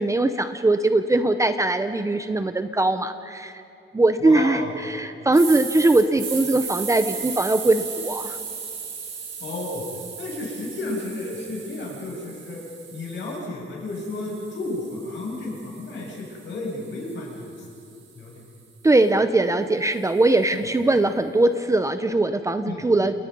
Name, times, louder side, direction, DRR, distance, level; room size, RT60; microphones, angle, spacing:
voice 1, 0.0-3.6 3.9-8.4 18.8-23.1, right 2 dB, 15° right, 9 dB, 0.7 m, -21 dB
voice 2, 4.2-4.7 9.4-9.8 10.2-12.6 12.9-17.5 18.1-18.5 20.5-20.6 22.6-22.8, left 2 dB, 60° left, -2 dB, 7.7 m, -32 dB
sound 1, 5.3-13.4 13.9-18.1, right 6 dB, 65° right, 5.1 m, -36 dB
29.5 x 29.0 x 5.5 m, 2.6 s
wide cardioid pair, 175°, 21 cm